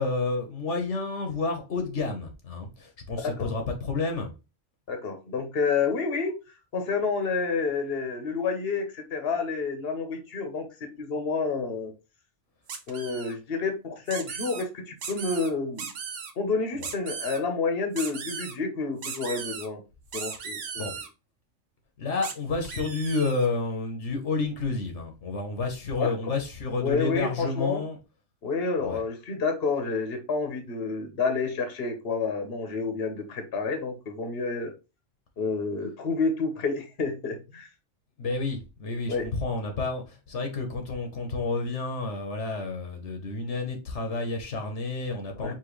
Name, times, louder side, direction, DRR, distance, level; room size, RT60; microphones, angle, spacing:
voice 1, 0.0-4.3 16.8-16.9 20.8-20.9 22.0-28.0 28.8-29.0 38.2-45.5, left 3 dB, 75° left, 1.3 m, -30 dB
voice 2, 3.2-3.5 4.9-11.9 12.9-15.9 16.4-19.8 20.1-20.6 20.9-21.0 26.0-26.3 26.8-27.8 28.4-34.7 35.4-37.7 39.1-39.3 45.4-45.5, left 4 dB, 55° left, 1.2 m, -29 dB
sound 1, 12.7-13.3 14.1-14.6 15.0-15.5 15.8-16.3 16.8-17.4 18.0-18.5 19.0-19.7 20.1-21.1 22.2-22.3 22.6-23.5, right 6 dB, 85° right, 1.2 m, -37 dB
5.0 x 3.2 x 3.1 m
omnidirectional pair, 1.2 m